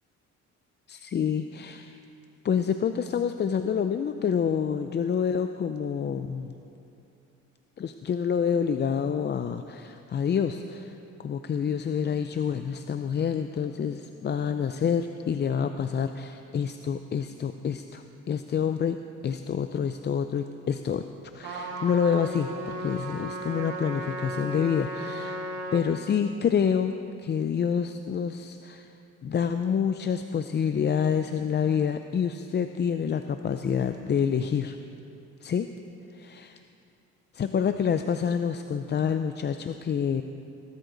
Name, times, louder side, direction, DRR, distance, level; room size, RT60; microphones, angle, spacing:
voice 1, 0.9-2.0 2.4-6.6 7.8-21.0 21.3-25.4 25.7-28.9 29.2-34.8 35.4-35.7 36.1-36.6 37.3-40.2, left 7 dB, 35° left, 9 dB, 0.5 m, -27 dB
Trumpet, 21.4-25.9, right 2 dB, 85° right, 1.9 m, -35 dB
18.0 x 12.5 x 3.9 m, 2.7 s
cardioid pair, 90°, 30 cm